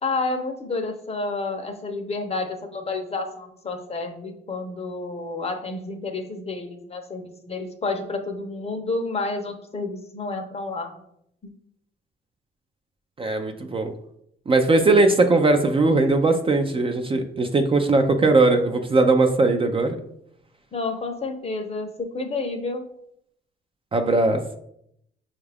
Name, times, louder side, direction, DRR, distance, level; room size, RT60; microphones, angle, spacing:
voice 1, 0.0-11.0 20.7-22.8, left 3 dB, 30° left, 5 dB, 0.7 m, -30 dB
voice 2, 13.2-13.9 14.5-20.0 23.9-24.4, right 3 dB, 25° right, 5 dB, 0.4 m, -19 dB
6.1 x 2.4 x 3.4 m, 0.74 s
cardioid pair, 90°, 20 cm